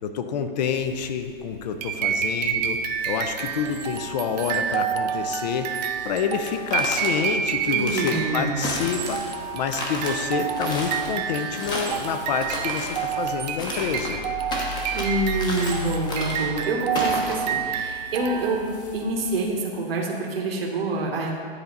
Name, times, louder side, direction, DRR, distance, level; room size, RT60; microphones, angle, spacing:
voice 1, 0.0-2.8 3.1-14.2, left 7 dB, 45° left, 8 dB, 0.6 m, -28 dB
sound 1, 0.7-19.5, equal, 60° left, 1.2 m, -41 dB
sound 2, 1.8-18.8, right 7 dB, 45° right, 0.5 m, -29 dB
sound 3, 6.4-7.1 7.7-8.2 8.6-9.3 9.7-10.1 10.6-11.1 11.5-12.0 12.4-13.0 13.6-14.2 14.5-15.1 15.4-15.8 16.1-16.5 17.0-17.3, left 1 dB, 15° left, 0.9 m, -32 dB
voice 2, 7.7-8.7 14.9-18.7 18.9-21.4, right 2 dB, 75° right, -1 dB, 1.3 m, -27 dB
9.9 x 4.2 x 3.9 m, 2.1 s
hypercardioid pair, 140°, 30 cm